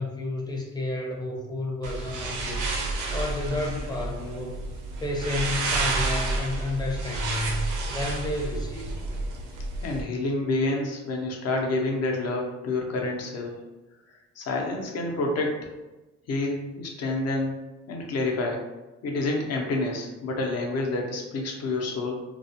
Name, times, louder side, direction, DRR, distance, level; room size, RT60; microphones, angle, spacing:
voice 1, 0.0-2.7 3.1-4.7 5.0-8.9, left 2 dB, 15° left, -1 dB, 0.6 m, -31 dB
sound 1, 1.8-10.0, right 2 dB, 85° right, 0.5 m, -30 dB
voice 2, 9.8-13.6 14.4-15.7 16.3-18.6 19.0-22.1, left 2 dB, 55° left, 1 dB, 0.6 m, -28 dB
2.3 x 2.1 x 2.7 m, 1.1 s
cardioid pair, 90°, 30 cm